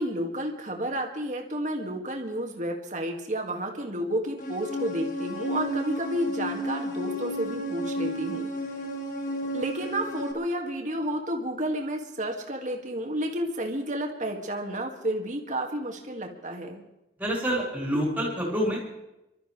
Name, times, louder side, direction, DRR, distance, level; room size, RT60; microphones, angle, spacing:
voice 1, 0.0-8.5 9.5-16.8, right 1 dB, 45° right, 2 dB, 2.1 m, -31 dB
sound 1, 4.4-10.3, equal, 45° left, 1.7 m, -32 dB
voice 2, 17.2-18.8, equal, 10° right, -4 dB, 4.6 m, -27 dB
27.5 x 13.0 x 3.3 m, 0.91 s
head